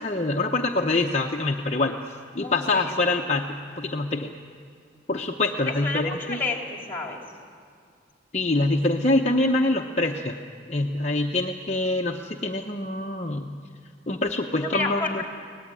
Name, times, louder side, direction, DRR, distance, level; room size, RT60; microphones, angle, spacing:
voice 1, 0.0-1.9 2.3-3.5 3.8-4.3 5.1-6.4 8.3-10.4 10.7-13.5 14.1-15.2, left 2 dB, 35° left, 1 dB, 0.8 m, -25 dB
voice 2, 2.4-3.2 5.6-7.2 14.6-15.3, left 3 dB, 10° left, 1 dB, 3.3 m, -31 dB
24.0 x 18.5 x 9.8 m, 2.3 s
head